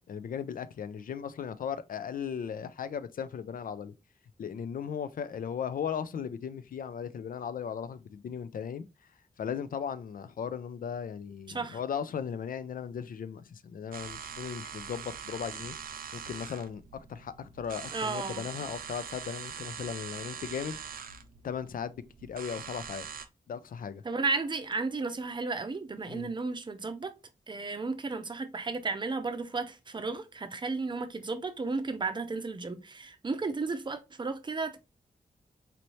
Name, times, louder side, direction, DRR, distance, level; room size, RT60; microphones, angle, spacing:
voice 1, 0.1-3.9 4.4-8.9 9.4-15.8 16.1-20.8 21.4-23.1 23.5-24.0 26.1-26.3, left 7 dB, 75° left, 0.4 m, -37 dB
sound 1, 13.9-23.3, right 7 dB, 85° right, 0.5 m, -43 dB
voice 2, 17.9-18.4 24.0-27.1 27.5-34.8, right 3 dB, 30° right, 0.5 m, -33 dB
4.3 x 2.7 x 3.0 m
wide cardioid pair, 155°, 15 cm